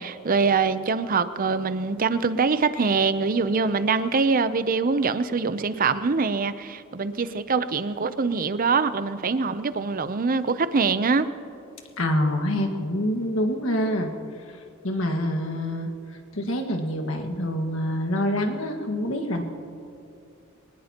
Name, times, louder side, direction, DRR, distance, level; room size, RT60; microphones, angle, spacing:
voice 1, 0.0-11.3, right 4 dB, 40° right, 13 dB, 0.6 m, -24 dB
voice 2, 12.0-14.1 14.8-15.9 16.3-19.4, left 1 dB, 70° left, 3 dB, 1.7 m, -26 dB
23.5 x 19.0 x 2.9 m, 2.6 s
head